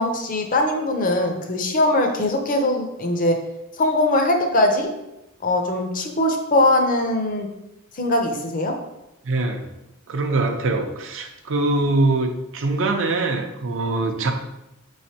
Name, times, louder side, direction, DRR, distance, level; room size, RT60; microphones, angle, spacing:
voice 1, 0.0-3.4 3.8-4.9 5.4-7.5 7.9-8.7, left 1 dB, 40° left, 4 dB, 0.5 m, -21 dB
voice 2, 9.2-9.7 10.1-14.3, right 2 dB, 60° right, 4 dB, 0.5 m, -23 dB
5.1 x 3.2 x 2.8 m, 0.91 s
head